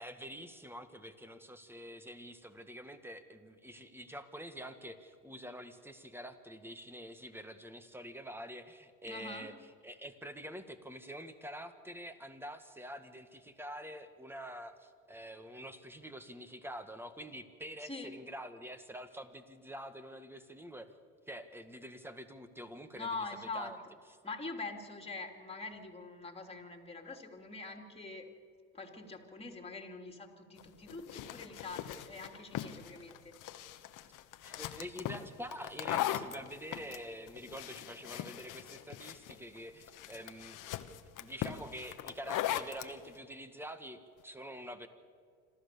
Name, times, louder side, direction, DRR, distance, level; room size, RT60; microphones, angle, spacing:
voice 1, 0.0-9.5 9.8-20.9 21.3-23.8 34.4-40.7 41.2-44.9, equal, 5° right, 9 dB, 1.9 m, -46 dB
voice 2, 9.0-9.5 17.8-18.1 22.9-23.7 24.2-28.3 28.7-33.3, left 3 dB, 15° left, 4 dB, 3.1 m, -44 dB
sound 1, 30.6-42.9, left 12 dB, 60° left, 1.3 m, -40 dB
26.5 x 14.0 x 7.0 m, 2.1 s
supercardioid pair, 80°, 36 cm